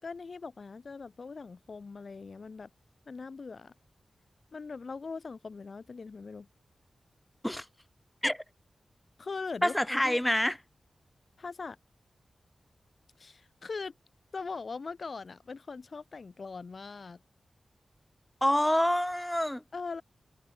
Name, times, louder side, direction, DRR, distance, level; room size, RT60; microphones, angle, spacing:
voice 1, 0.0-2.7 3.1-3.7 4.5-6.5 9.2-10.2 11.4-11.8 13.2-13.9 14.3-17.2 19.7-20.0, left 4 dB, 60° left, 3.1 m, -41 dB
voice 2, 9.6-10.6 18.4-19.6, left 1 dB, 10° left, 1.2 m, -27 dB
cardioid pair, 40°, 0 cm